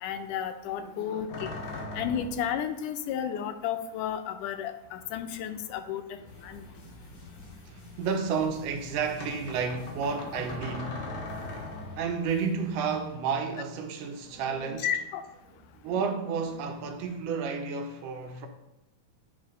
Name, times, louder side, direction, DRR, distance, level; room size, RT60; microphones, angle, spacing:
voice 1, 0.0-1.5 1.9-6.6 14.8-15.2, left 9 dB, 90° left, 2.2 m, -33 dB
voice 2, 0.8-1.2 8.0-11.0 12.0-14.9 15.8-18.5, right 5 dB, 85° right, 2.5 m, -31 dB
sound 1, 1.3-2.6 4.1-4.2 4.8-6.1 6.4-7.9 9.2-12.2 14.2-15.2 15.4-15.9 16.3-17.3, left 2 dB, 55° left, 2.6 m, -41 dB
sound 2, 6.1-13.1, left 2 dB, 40° left, 4.2 m, -50 dB
8.7 x 5.0 x 5.1 m
omnidirectional pair, 3.6 m